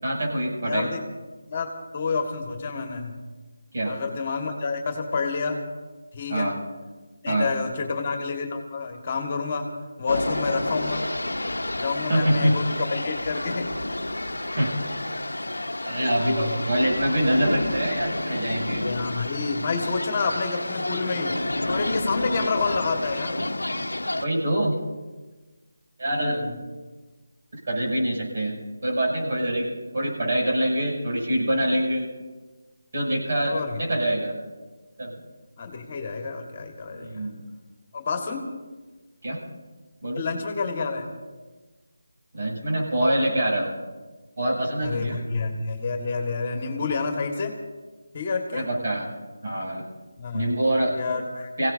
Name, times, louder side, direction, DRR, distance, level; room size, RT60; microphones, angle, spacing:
voice 1, 0.0-0.9 3.7-4.0 6.3-6.6 7.3-7.5 12.1-12.6 14.5-14.7 15.8-18.9 24.2-24.8 26.0-26.4 27.5-28.6 28.8-32.1 32.9-34.3 35.0-35.2 36.9-37.4 39.2-39.4 40.0-40.2 42.3-43.7 44.4-45.2 48.5-49.1 49.4-49.8 50.3-51.0 51.6-51.7, right 1 dB, 50° right, -2 dB, 7.1 m, -25 dB
voice 2, 0.6-1.0 1.5-3.2 3.9-5.6 6.1-6.5 7.2-9.7 10.0-11.0 11.8-13.7 16.2-16.5 18.7-21.4 21.7-23.4 26.1-26.5 33.5-33.8 35.6-37.3 37.9-38.4 40.2-41.1 44.8-47.6 48.1-48.7 50.2-50.5 50.9-51.5, left 4 dB, 35° left, 4 dB, 1.8 m, -29 dB
sound 1, 10.1-24.3, left 1 dB, 90° left, 0.8 m, -30 dB
28.0 x 17.0 x 2.8 m, 1.3 s
figure-of-eight pair, 160°, 0 cm